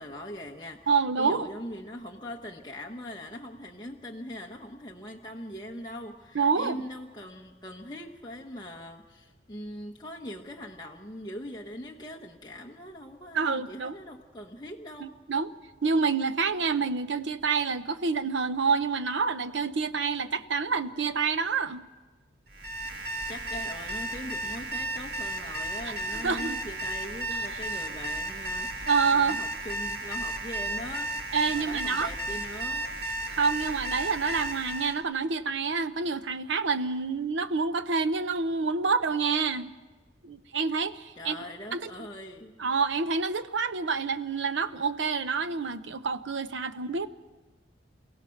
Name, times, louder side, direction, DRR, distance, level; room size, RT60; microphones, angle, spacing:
voice 1, 0.0-0.9 1.2-15.1 23.3-31.2 31.5-33.0 41.1-42.6, left 1 dB, 20° left, -1 dB, 1.0 m, -41 dB
voice 2, 0.9-1.5 6.3-6.8 13.3-14.0 15.0-15.5 15.8-21.9 26.1-26.6 27.3-27.6 28.9-29.4 31.3-32.1 33.3-39.7 40.2-41.4 41.7-41.9 42.6-47.1, right 5 dB, 70° right, 12 dB, 0.8 m, -27 dB
Alarm, 22.5-35.0, right 1 dB, 55° right, 1.8 m, -34 dB
29.0 x 16.0 x 5.9 m, 1.3 s
head